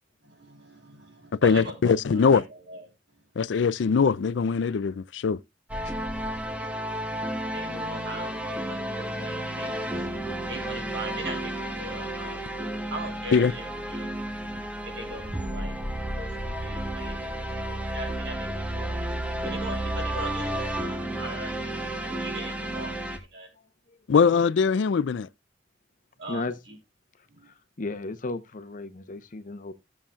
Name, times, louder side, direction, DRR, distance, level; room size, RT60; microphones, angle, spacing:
voice 1, 0.2-2.8 6.5-10.1 10.5-12.4 12.9-14.1 14.8-15.8 16.2-19.0 19.4-21.7 22.0-23.5 26.2-26.7 27.3-27.5, right 1 dB, 70° right, 3.2 m, -41 dB
voice 2, 1.3-2.5 3.4-5.4 13.3-13.5 24.1-25.3, left 5 dB, 75° left, 0.4 m, -22 dB
sound 1, 5.7-23.2, right 1 dB, 10° right, 1.1 m, -32 dB
voice 3, 23.5-24.0 26.3-26.6 27.2-29.7, left 2 dB, 45° left, 0.8 m, -36 dB
15.5 x 7.1 x 2.3 m
head